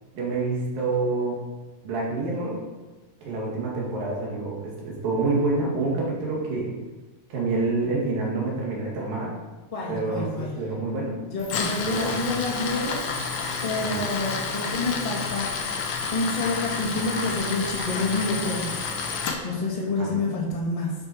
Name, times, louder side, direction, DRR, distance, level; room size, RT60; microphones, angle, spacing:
voice 1, 0.2-1.4 1.8-2.6 3.2-6.7 7.3-9.3 9.9-11.2 11.8-12.1 13.8-14.1 20.0-20.2, right 3 dB, 80° right, -3 dB, 4.0 m, -27 dB
voice 2, 9.7-10.6 11.3-13.3 13.6-15.5 16.1-20.9, left 3 dB, 15° left, -3 dB, 1.3 m, -28 dB
Tools, 11.4-19.4, left 4 dB, 90° left, 1.1 m, -30 dB
sound 1, 11.5-19.3, left 3 dB, 45° left, 1.5 m, -44 dB
10.5 x 7.3 x 4.6 m, 1.2 s
omnidirectional pair, 4.0 m